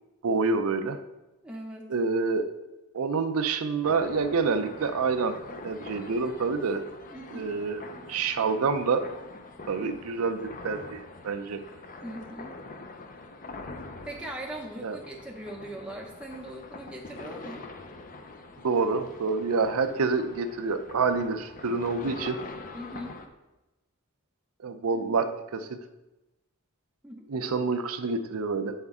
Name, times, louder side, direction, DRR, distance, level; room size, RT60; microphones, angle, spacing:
voice 1, 0.2-1.0 1.9-2.5 2.9-5.4 5.6-6.8 7.3-7.8 8.1-9.1 9.7-11.6 14.8-15.0 18.6-22.4 24.6-25.7 27.3-28.7, right 4 dB, 75° right, 9 dB, 0.5 m, -27 dB
voice 2, 1.4-1.9 7.1-7.6 12.0-12.6 14.0-17.7 22.7-23.2 24.9-25.3 27.0-27.3, right 1 dB, 5° right, -1 dB, 0.6 m, -40 dB
sound 1, 3.8-23.3, left 3 dB, 35° left, 0.5 m, -44 dB
7.8 x 5.5 x 3.6 m, 1.0 s
head